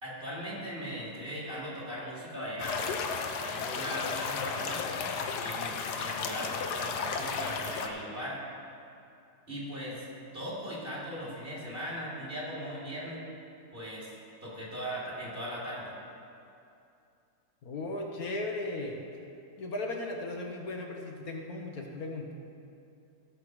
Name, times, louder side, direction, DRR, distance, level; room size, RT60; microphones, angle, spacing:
voice 1, 0.0-3.0 3.4-4.9 5.4-8.4 9.5-10.0 10.3-13.2 13.7-14.1 14.4-15.9, equal, 35° right, -6 dB, 3.0 m, -39 dB
sound 1, 2.6-7.9, left 5 dB, 85° left, 1.4 m, -34 dB
voice 2, 17.6-19.0 19.6-22.3, left 2 dB, 65° left, 1 dB, 1.5 m, -36 dB
16.5 x 6.8 x 4.8 m, 2.6 s
omnidirectional pair, 1.7 m